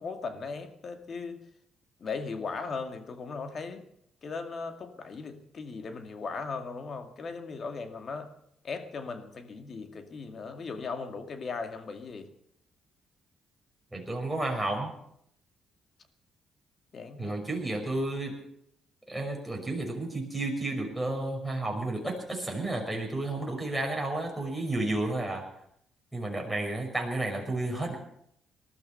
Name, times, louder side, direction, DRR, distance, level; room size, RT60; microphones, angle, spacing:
voice 1, 0.0-1.4 2.0-3.9 4.2-8.3 8.6-12.3 16.9-17.4, left 4 dB, 50° left, 6 dB, 2.2 m, -38 dB
voice 2, 13.9-14.9 17.2-18.3 19.1-25.4 26.1-28.0, right 2 dB, ahead, 0 dB, 5.9 m, -32 dB
20.0 x 12.5 x 5.7 m, 0.72 s
cardioid pair, 90°, 0 cm